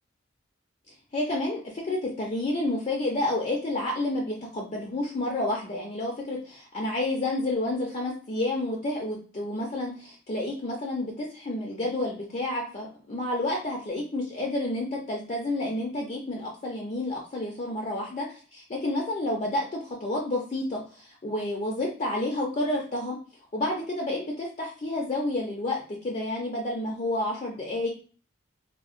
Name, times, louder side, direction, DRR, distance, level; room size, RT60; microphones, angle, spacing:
voice 1, 1.1-23.2 23.5-27.9, left 1 dB, 35° left, -1 dB, 0.5 m, -30 dB
3.6 x 2.1 x 2.4 m, 0.40 s
head